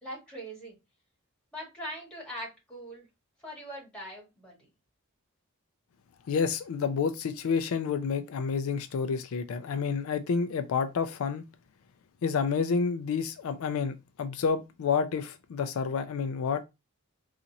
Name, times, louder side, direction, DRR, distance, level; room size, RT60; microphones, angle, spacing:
voice 1, 0.0-0.8 1.5-3.1 3.4-4.6, equal, 5° left, 1.8 m, -41 dB
voice 2, 6.3-11.4 12.2-16.6, left 5 dB, 70° left, 0.4 m, -29 dB
3.9 x 2.4 x 2.8 m
head